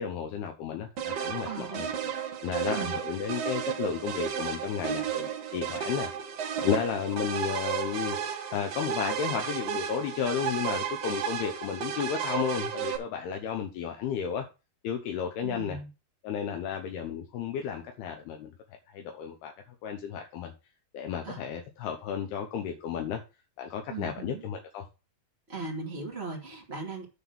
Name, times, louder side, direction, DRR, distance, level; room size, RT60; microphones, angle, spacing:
voice 1, 0.0-1.9 2.4-6.1 6.6-14.5 14.8-15.8 16.2-18.5 18.9-19.5 19.8-20.5 20.9-23.2 23.6-24.8, left 8 dB, 80° left, 3.0 m, -33 dB
sound 1, 1.0-13.0, right 8 dB, 55° right, 1.9 m, -33 dB
voice 2, 1.4-2.0 2.7-3.0 15.4-15.9 21.2-21.4 23.9-24.4 25.5-27.0, right 4 dB, 20° right, 1.9 m, -38 dB
9.9 x 4.0 x 7.1 m
omnidirectional pair, 4.6 m